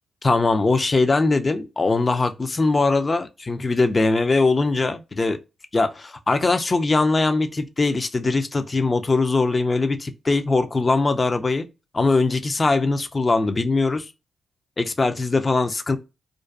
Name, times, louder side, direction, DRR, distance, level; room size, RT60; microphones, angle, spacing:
voice 1, 0.2-5.4 5.7-11.7 11.9-14.1 14.8-16.0, left 3 dB, 35° left, 0.4 m, -21 dB
2.5 x 2.2 x 2.3 m
supercardioid pair, 45°, 0 cm